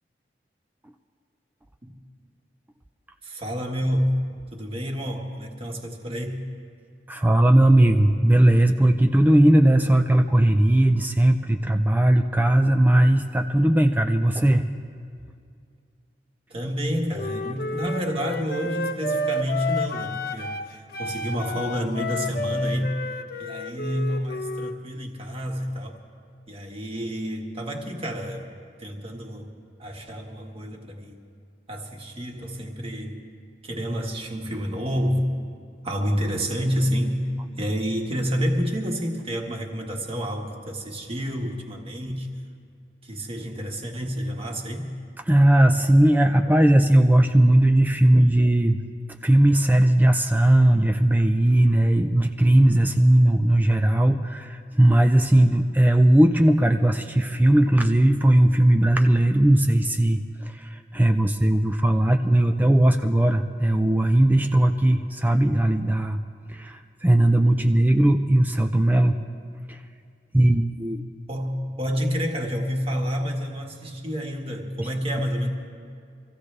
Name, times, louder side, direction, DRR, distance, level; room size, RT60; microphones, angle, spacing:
voice 1, 3.2-4.2 4.5-6.4 16.5-20.6 21.0-22.9 23.4-26.0 26.5-28.5 28.8-29.5 29.8-31.2 31.7-33.2 33.6-35.4 35.8-37.3 37.6-42.3 43.0-44.9 71.3-75.5, equal, 35° right, 1 dB, 1.5 m, -29 dB
voice 2, 7.1-14.7 45.3-48.8 49.2-66.2 66.5-69.2 69.7-69.8 70.3-71.0, right 1 dB, 10° right, 6 dB, 0.4 m, -18 dB
Wind instrument woodwind instrument, 17.1-20.7 20.9-24.8, left 2 dB, 60° left, 0.7 m, -31 dB
25.0 x 15.0 x 3.3 m, 2.3 s
head